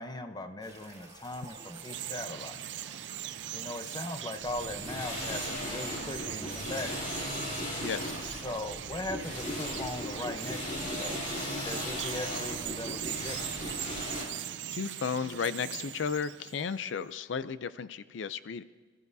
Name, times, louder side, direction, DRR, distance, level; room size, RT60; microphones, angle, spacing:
voice 1, 0.0-2.6 3.5-7.2 8.4-11.4 11.6-13.6, left 2 dB, 20° left, 7 dB, 0.8 m, -39 dB
sound 1, 0.6-14.6, right 2 dB, 20° right, 2.4 m, -52 dB
Chirp tweet, 1.2-16.9, right 11 dB, 70° right, 0.4 m, -41 dB
sound 2, 4.4-14.3, left 1 dB, 40° left, 3.0 m, -37 dB
voice 2, 7.8-8.2 14.7-18.6, left 6 dB, 85° left, 14 dB, 0.4 m, -34 dB
27.5 x 14.5 x 2.7 m, 1.5 s
head